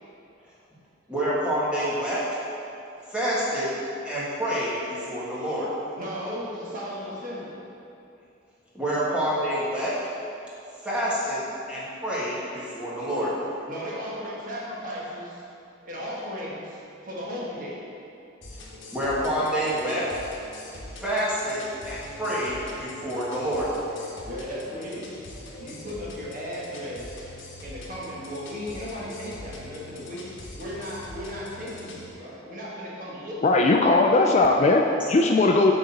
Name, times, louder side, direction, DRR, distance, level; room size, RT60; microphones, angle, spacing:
voice 1, 1.1-2.2 3.1-3.7 4.0-5.7 8.7-9.9 10.8-11.4 11.7-13.3 18.9-20.0 21.0-23.7, equal, 5° right, -9 dB, 1.5 m, -27 dB
voice 2, 6.0-7.6 13.7-15.4 15.8-17.8 22.7-22.9 24.3-25.3 25.6-27.3 27.6-30.3 30.6-33.6, equal, 45° right, -5 dB, 1.4 m, -36 dB
sound 1, 18.4-32.1, left 2 dB, 75° left, 1.1 m, -43 dB
voice 3, 33.4-35.7, left 2 dB, 35° left, 2 dB, 0.3 m, -19 dB
6.4 x 4.0 x 5.8 m, 2.7 s
head